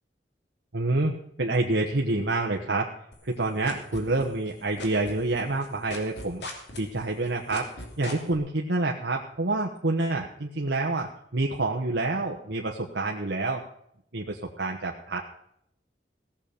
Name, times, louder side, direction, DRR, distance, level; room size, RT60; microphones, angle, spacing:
voice 1, 0.7-1.1 1.4-2.9 3.2-6.4 6.8-7.7 8.0-13.6 14.1-15.2, right 2 dB, 85° right, 0 dB, 1.3 m, -27 dB
sound 1, 3.1-4.5 4.8-8.4, left 2 dB, 75° left, 3.0 m, -38 dB
17.0 x 7.3 x 6.7 m, 0.72 s
head